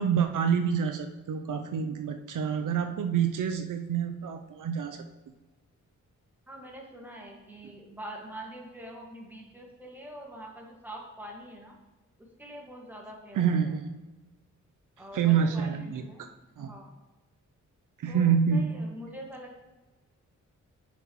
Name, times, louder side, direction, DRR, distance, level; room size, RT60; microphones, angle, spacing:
voice 1, 0.0-5.0 13.3-13.9 15.1-16.0 16.6-16.7 18.0-18.7, right 7 dB, 80° right, 6 dB, 0.6 m, -27 dB
voice 2, 6.5-11.7 12.2-13.7 15.0-16.3 16.6-16.9 18.1-19.6, right 1 dB, 5° right, -1 dB, 1.6 m, -44 dB
7.0 x 6.0 x 3.0 m, 1.2 s
cardioid pair, 80°, 31 cm